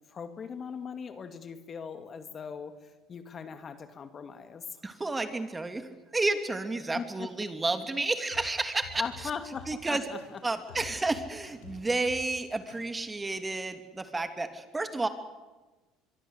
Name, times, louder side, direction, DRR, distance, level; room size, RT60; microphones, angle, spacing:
voice 1, 0.1-4.8 6.9-7.3 9.0-10.4, left 6 dB, 40° left, 9 dB, 2.2 m, -39 dB
voice 2, 4.8-9.3 9.7-10.0 10.4-15.1, right 2 dB, 15° right, 8 dB, 2.9 m, -31 dB
sound 1, 8.3-13.2, left 5 dB, 90° left, 5.7 m, -49 dB
24.0 x 24.0 x 8.3 m, 1.2 s
hypercardioid pair, 80°, 0 cm